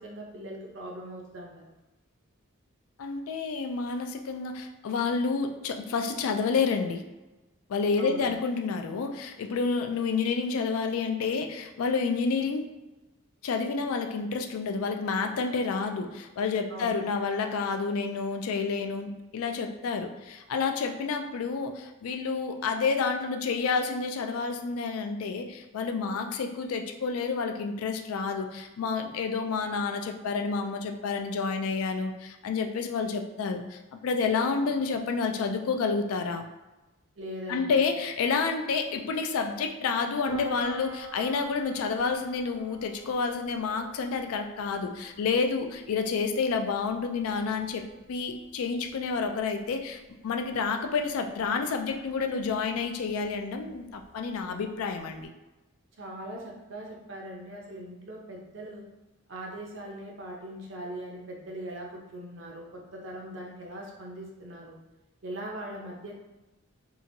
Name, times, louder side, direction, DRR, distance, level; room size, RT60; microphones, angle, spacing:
voice 1, 0.0-1.7 8.0-8.3 16.7-16.9 37.2-37.9 56.0-58.8 59.3-64.8 65.2-66.2, right 1 dB, 60° right, -1 dB, 0.6 m, -40 dB
voice 2, 3.0-7.0 7.7-12.7 13.4-36.5 37.5-55.3, left 4 dB, 85° left, 5 dB, 0.3 m, -29 dB
Piano, 40.3-55.2, equal, 30° left, 0.6 m, -47 dB
2.8 x 2.5 x 2.6 m, 1.1 s
head